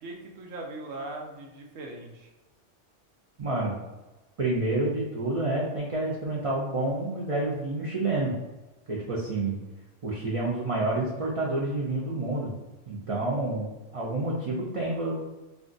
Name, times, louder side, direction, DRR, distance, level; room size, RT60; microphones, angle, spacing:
voice 1, 0.0-2.3, right 2 dB, 80° right, 1 dB, 1.0 m, -40 dB
voice 2, 3.4-3.7 4.4-8.3 8.9-9.6 10.0-12.6 12.9-15.2, right 2 dB, 55° right, -5 dB, 0.3 m, -29 dB
2.5 x 2.3 x 3.8 m, 1.1 s
omnidirectional pair, 1.3 m